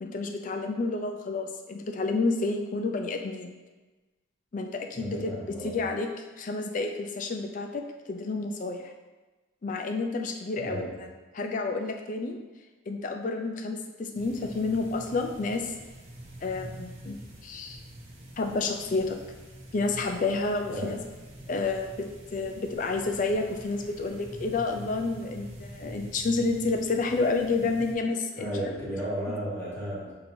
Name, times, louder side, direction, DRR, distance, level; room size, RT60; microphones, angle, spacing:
voice 1, 0.0-3.5 4.5-5.4 5.6-6.1 6.4-7.8 8.1-8.9 9.6-10.8 11.3-12.4 12.9-15.7 16.4-17.8 18.4-19.2 19.7-21.0 21.5-28.5, left 3 dB, 40° left, 4 dB, 0.4 m, -30 dB
voice 2, 4.9-5.8 10.5-11.0 20.7-21.0 28.3-30.1, equal, 10° left, -9 dB, 1.5 m, -34 dB
sound 1, 14.1-27.9, right 1 dB, 35° right, 0.7 m, -45 dB
6.8 x 2.8 x 2.7 m, 1.2 s
head